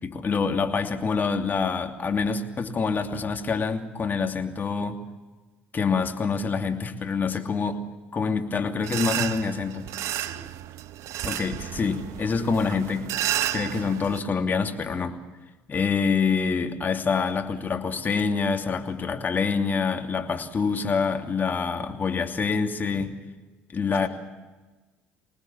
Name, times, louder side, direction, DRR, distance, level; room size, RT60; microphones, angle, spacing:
voice 1, 0.0-5.0 5.7-7.8 8.1-9.9 11.2-13.1 13.5-15.2 15.7-23.2 23.7-24.1, left 5 dB, 35° left, 5 dB, 2.8 m, -26 dB
sound 1, 8.8-14.2, right 12 dB, 60° right, 0.8 m, -32 dB
voice 2, 10.0-10.8 23.9-24.1, right 5 dB, 45° right, 3 dB, 7.3 m, -46 dB
25.5 x 19.5 x 7.4 m, 1.2 s
hypercardioid pair, 65°, 6 cm